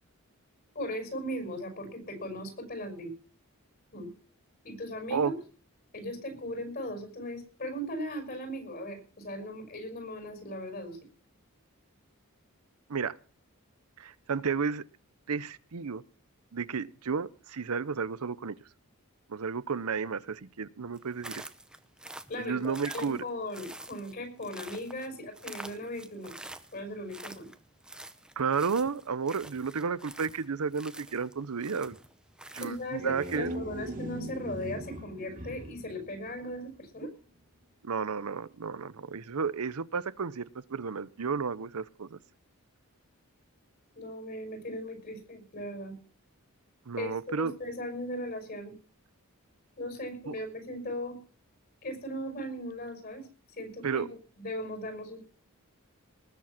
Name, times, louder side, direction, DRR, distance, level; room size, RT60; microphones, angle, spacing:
voice 1, 0.7-3.1 3.9-4.1 4.6-5.3 5.9-11.0 22.3-26.3 26.7-27.5 32.6-37.1 43.9-46.0 47.0-48.7 49.8-51.2 51.8-54.1 54.4-55.3, equal, 45° left, 7 dB, 5.9 m, -38 dB
voice 2, 14.0-14.8 15.3-16.0 16.5-18.5 19.3-21.5 22.4-23.2 28.4-32.0 32.5-33.5 37.8-42.2 46.9-47.5 50.3-50.4 53.8-54.1, right 5 dB, 80° right, 17 dB, 0.7 m, -32 dB
sound 1, 20.9-33.5, right 1 dB, 5° right, 0.7 m, -47 dB
sound 2, 32.7-36.9, equal, 40° right, 2.2 m, -40 dB
19.5 x 7.6 x 5.9 m, 0.39 s
head